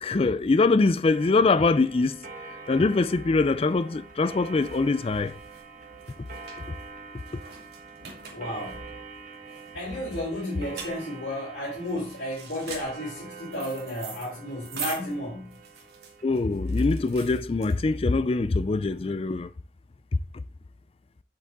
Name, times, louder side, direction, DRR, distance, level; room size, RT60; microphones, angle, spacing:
voice 1, 0.0-2.2 2.7-5.4 16.2-19.5, left 3 dB, 30° left, 0.4 m, -23 dB
Clock, 1.1-17.2, right 4 dB, 45° right, 1.4 m, -45 dB
sound 1, 3.8-18.2, right 5 dB, 65° right, 2.4 m, -43 dB
voice 2, 8.3-8.9 9.7-15.6, left 1 dB, 65° left, 3.8 m, -33 dB
7.9 x 7.2 x 3.6 m
head